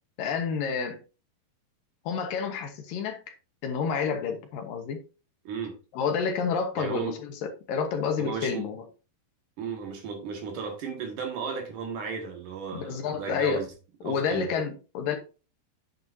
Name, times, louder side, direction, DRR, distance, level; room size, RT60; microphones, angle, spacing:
voice 1, 0.2-1.0 2.1-3.3 3.6-5.0 5.9-8.8 12.7-13.6 14.0-15.2, left 6 dB, 70° left, 2.7 m, -29 dB
voice 2, 5.4-5.8 6.8-7.1 8.2-8.7 9.6-13.7 14.0-14.5, right 5 dB, 60° right, 3.0 m, -34 dB
8.7 x 8.7 x 2.7 m
omnidirectional pair, 4.4 m